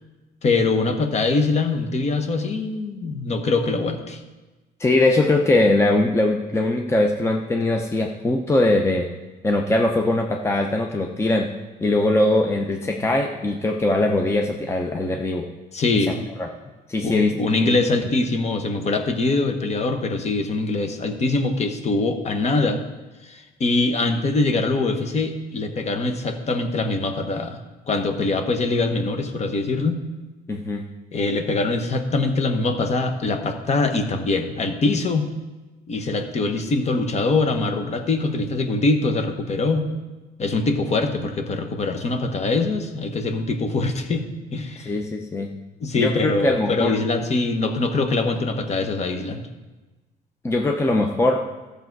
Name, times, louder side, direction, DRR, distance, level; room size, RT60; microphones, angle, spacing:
voice 1, 0.4-4.2 15.7-16.2 17.0-22.8 23.2-27.6 27.9-30.0 31.1-35.3 35.9-39.9 40.4-44.2 44.5-44.9 45.8-49.4, left 3 dB, 40° left, 6 dB, 1.3 m, -23 dB
voice 2, 4.8-9.1 9.4-11.5 11.8-15.4 16.1-16.5 16.9-17.3 17.6-17.8 30.5-30.8 44.9-45.5 46.0-47.0 50.4-51.4, left 2 dB, 15° left, 2 dB, 0.8 m, -21 dB
13.0 x 6.8 x 4.7 m, 1.2 s
cardioid pair, 110°, 17 cm